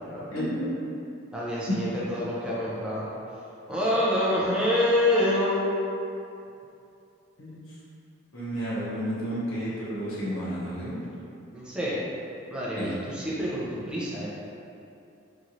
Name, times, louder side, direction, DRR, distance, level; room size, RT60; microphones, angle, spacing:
voice 1, 0.3-0.7 7.4-7.6 8.3-11.0 12.8-13.0, equal, 85° left, -9 dB, 0.7 m, -31 dB
voice 2, 1.3-3.1 3.7-5.7 11.5-12.1 12.5-14.3, left 1 dB, 5° right, -8 dB, 0.5 m, -26 dB
2.9 x 2.7 x 2.5 m, 2.6 s
head